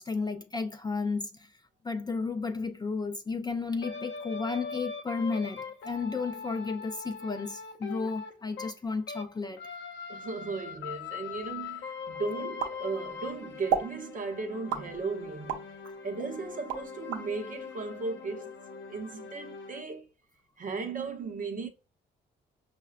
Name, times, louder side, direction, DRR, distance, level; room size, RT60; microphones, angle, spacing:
voice 1, 0.0-1.5 1.8-9.6, left 4 dB, 20° left, 0.4 m, -33 dB
sound 1, 3.8-9.3 9.6-19.8, left 5 dB, 65° left, 0.6 m, -41 dB
voice 2, 10.1-15.8 16.0-18.5 18.9-20.1 20.6-21.7, right 4 dB, 40° right, 0.7 m, -36 dB
sound 2, 12.6-13.3 13.7-14.0 14.7-15.7 16.2-17.3, right 8 dB, 90° right, 0.6 m, -32 dB
5.4 x 2.1 x 2.3 m
cardioid pair, 90°, 20 cm